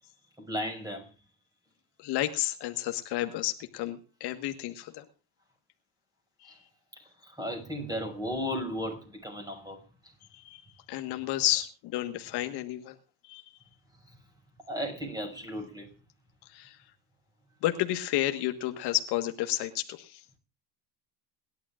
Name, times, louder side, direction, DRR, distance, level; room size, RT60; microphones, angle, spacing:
voice 1, 0.4-1.1 6.4-6.6 7.0-9.8 10.0-10.1 14.7-15.9, equal, 10° right, 6.0 m, -35 dB
voice 2, 2.0-5.0 6.4-6.7 10.3-10.6 10.9-13.0 13.2-13.6 16.4-16.8 17.6-20.2, left 14 dB, 60° left, 1.5 m, -31 dB
29.0 x 12.0 x 2.5 m
supercardioid pair, 120°, 45 cm